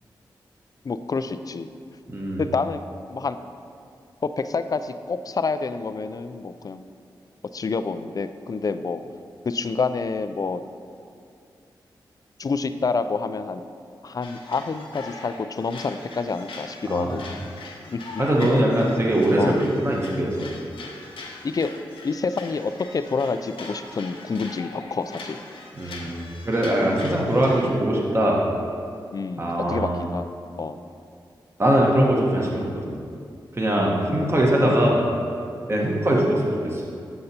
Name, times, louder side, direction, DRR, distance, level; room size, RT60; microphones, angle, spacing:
voice 1, 0.8-1.7 2.4-2.8 3.1-3.4 4.2-6.8 7.5-9.0 9.5-10.6 12.4-13.6 14.0-17.2 17.6-18.0 19.4-19.6 21.4-21.7 22.0-25.4 25.8-25.9 27.6-27.8 29.1-30.2 30.6-30.8 33.8-34.3 34.7-34.8 35.7-35.9, left 4 dB, 45° left, 10 dB, 0.3 m, -28 dB
voice 2, 2.1-2.4 16.9-17.2 18.2-20.5 25.7-28.4 29.4-30.0 31.6-32.9 33.5-35.0 35.7-36.8, right 1 dB, 30° right, -3 dB, 1.2 m, -22 dB
sound 1, 14.2-27.7, left 3 dB, 80° left, 0.7 m, -41 dB
7.9 x 6.4 x 2.8 m, 2.4 s
cardioid pair, 45°, 9 cm